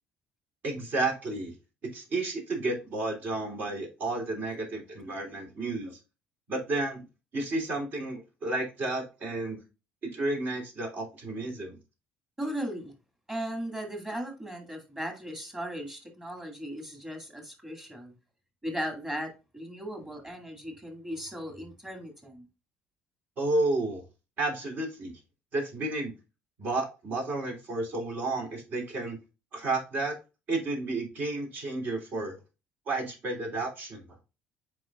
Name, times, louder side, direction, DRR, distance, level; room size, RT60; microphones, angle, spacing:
voice 1, 0.6-1.5 1.9-6.0 6.5-7.0 7.3-9.6 10.0-11.8 23.4-24.0 24.4-25.1 25.5-26.1 26.6-29.2 29.5-30.2 30.5-32.3 32.9-34.0, right 2 dB, 50° right, 3.2 m, -31 dB
voice 2, 12.4-12.9 13.3-18.1 18.6-22.4, equal, 10° right, 2.3 m, -37 dB
7.7 x 5.2 x 2.4 m
cardioid pair, 125°, 4 cm